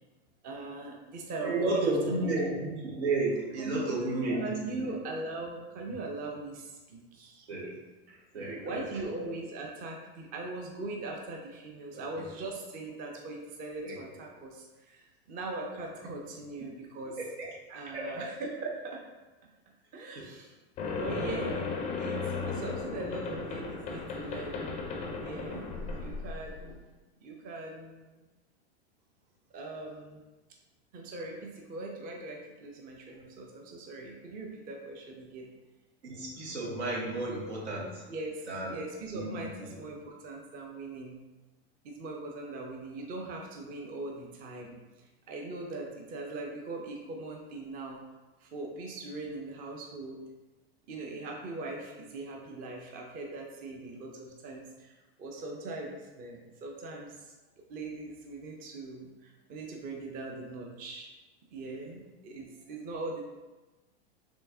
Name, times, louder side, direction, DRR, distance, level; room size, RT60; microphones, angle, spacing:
voice 1, 0.4-2.3 3.6-7.5 8.3-17.2 17.7-19.0 19.9-20.5 21.0-24.7 25.2-25.7 26.0-26.9 27.2-28.2 29.5-30.2 30.9-35.5 38.1-41.2 41.8-48.0 48.4-50.2 50.9-57.3 57.7-61.1 61.5-63.2, right 2 dB, 25° right, 0 dB, 0.6 m, -40 dB
voice 2, 1.4-4.5 4.8-4.9 7.5-7.8 8.1-9.1 13.8-14.0 16.6-16.7 17.2-17.5 17.9-18.3 20.2-20.3 36.0-38.0 38.5-38.8 39.1-39.3 39.6-39.7, right 2 dB, 90° right, -3 dB, 1.3 m, -32 dB
sound 1, 20.8-26.8, left 4 dB, 20° left, 0.4 m, -35 dB
4.4 x 3.4 x 2.7 m, 1.1 s
hypercardioid pair, 130°, 33 cm